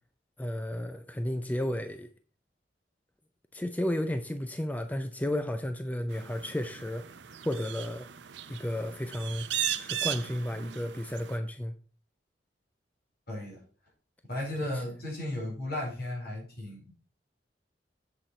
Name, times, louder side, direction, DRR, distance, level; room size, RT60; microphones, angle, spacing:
voice 1, 0.4-2.1 3.5-7.0 7.4-8.1 8.5-9.5 9.8-11.7 14.7-14.8, left 1 dB, 10° left, 0.5 m, -33 dB
sound 1, 6.1-11.4, right 11 dB, 80° right, 0.6 m, -37 dB
voice 2, 13.3-13.6 14.3-16.9, left 1 dB, 60° left, 4.3 m, -35 dB
7.6 x 6.6 x 4.4 m
head